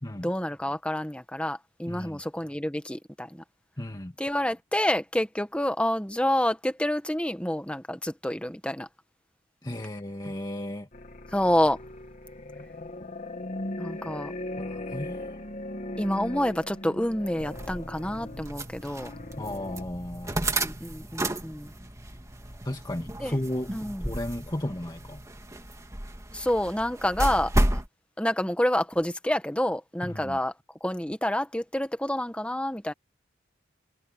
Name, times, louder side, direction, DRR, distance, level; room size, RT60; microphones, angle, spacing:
voice 1, 0.2-3.4 4.2-8.9 11.3-11.8 13.8-14.3 16.0-19.1 20.6-21.7 23.2-23.4 23.7-24.1 26.3-27.8 28.2-30.5 30.8-32.9, left 1 dB, 5° left, 1.3 m, -28 dB
voice 2, 1.8-2.2 3.8-4.1 9.6-10.9 14.6-15.4 19.4-20.5 22.6-23.7 24.0-25.2 30.0-30.4, left 1 dB, 20° left, 1.9 m, -34 dB
sound 1, 10.9-19.8, left 1 dB, 40° left, 2.0 m, -39 dB
sound 2, 17.4-27.9, right 1 dB, 15° right, 2.1 m, -32 dB
head